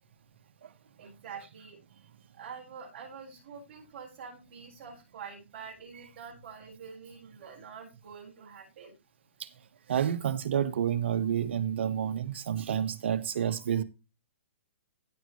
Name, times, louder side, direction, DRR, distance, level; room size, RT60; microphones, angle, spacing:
voice 1, 1.0-1.8 2.4-8.9, right 6 dB, 40° right, 7.4 m, -46 dB
voice 2, 9.9-13.8, right 9 dB, 65° right, 1.2 m, -29 dB
16.0 x 6.4 x 3.2 m
hypercardioid pair, 150°, 7 cm